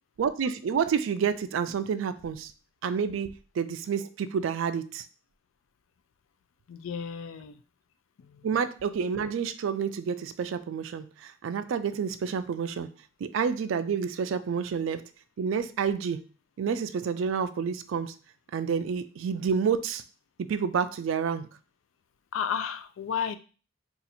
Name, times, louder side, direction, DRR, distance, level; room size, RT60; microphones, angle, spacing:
voice 1, 0.2-2.5 2.8-5.1 8.4-12.9 13.2-15.1 15.4-16.2 16.6-18.2 18.5-20.0 20.4-21.5, right 6 dB, 75° right, 11 dB, 0.3 m, -29 dB
voice 2, 6.7-7.6 8.2-8.5 22.3-23.4, left 7 dB, 75° left, 11 dB, 0.3 m, -33 dB
2.8 x 2.5 x 4.1 m, 0.36 s
head